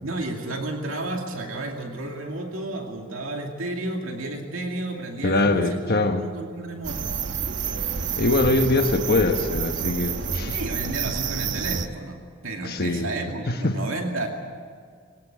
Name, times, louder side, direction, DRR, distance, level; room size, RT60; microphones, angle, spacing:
voice 1, 0.0-5.8 6.2-7.1 10.5-14.3, right 2 dB, 75° right, 2 dB, 2.5 m, -32 dB
voice 2, 5.2-6.2 8.1-10.6 12.6-13.1 13.6-13.8, left 2 dB, 50° left, 4 dB, 1.3 m, -22 dB
sound 1, 6.8-11.9, right 6 dB, 60° right, 1.1 m, -28 dB
23.0 x 18.0 x 8.2 m, 2.1 s
head